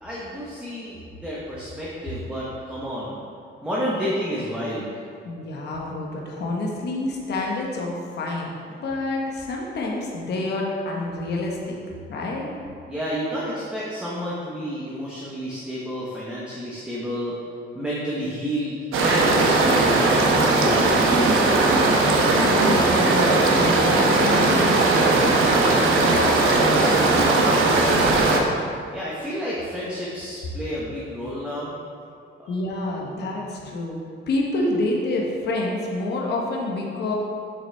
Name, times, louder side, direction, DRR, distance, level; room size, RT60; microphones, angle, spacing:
voice 1, 0.0-3.2 3.6-4.9 12.9-17.3 17.7-21.4 28.9-31.7 32.4-32.6, equal, 5° right, -7 dB, 0.8 m, -30 dB
voice 2, 5.2-8.5 8.8-11.8 12.1-12.5 21.7-28.4 32.5-34.0 34.3-37.1, left 2 dB, 55° left, -2 dB, 0.9 m, -28 dB
sound 1, 18.9-28.4, right 2 dB, 85° right, 0.8 m, -18 dB
7.2 x 5.7 x 3.3 m, 2.4 s
cardioid pair, 170°, 20 cm